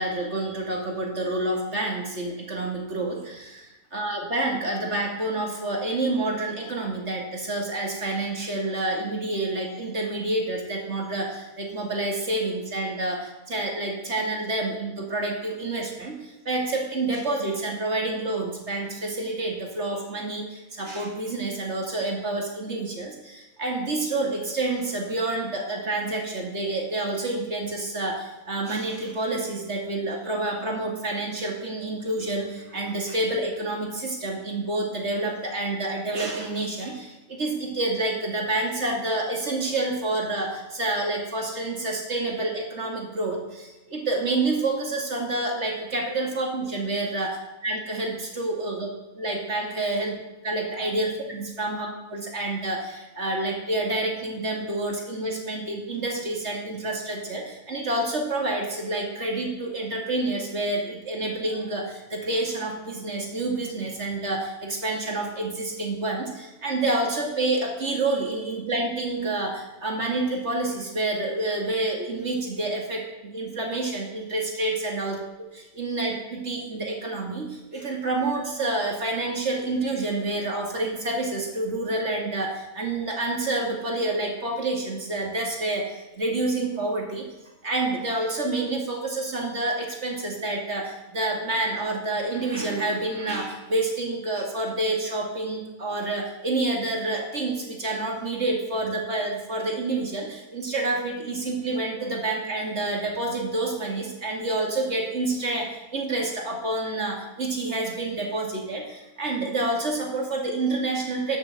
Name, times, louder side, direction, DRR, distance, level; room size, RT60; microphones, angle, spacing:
voice 1, 0.0-47.4 47.6-48.9 49.1-50.2 50.4-73.0 73.3-75.2 75.5-87.3 87.6-111.4, right 2 dB, 50° right, 0 dB, 2.6 m, -28 dB
12.5 x 7.2 x 7.6 m, 1.0 s
omnidirectional pair, 1.6 m